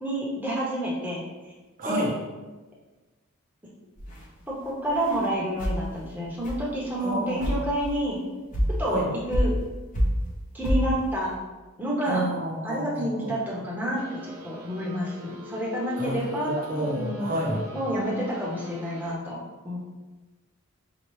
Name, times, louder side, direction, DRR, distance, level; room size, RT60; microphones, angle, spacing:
voice 1, 0.0-1.2 1.8-2.0 4.5-8.2 8.8-9.0 9.3-9.5 10.5-11.3 11.8-12.2 12.6-17.4 17.7-19.8, equal, 10° right, -6 dB, 0.8 m, -29 dB
voice 2, 1.8-2.1 7.0-7.6 8.9-9.1 12.1-13.3 16.0-17.7, right 1 dB, 40° right, -2 dB, 0.7 m, -30 dB
sound 1, 4.0-4.2 4.9-5.3 5.6-5.8 6.4-6.6 7.1-7.2 7.4-8.0 8.5-8.8 9.3-9.7 9.9-10.3 10.6-10.9, equal, 35° left, 0.7 m, -26 dB
sound 2, 14.0-19.2, equal, 80° right, 0.6 m, -43 dB
5.5 x 2.3 x 3.1 m, 1.2 s
head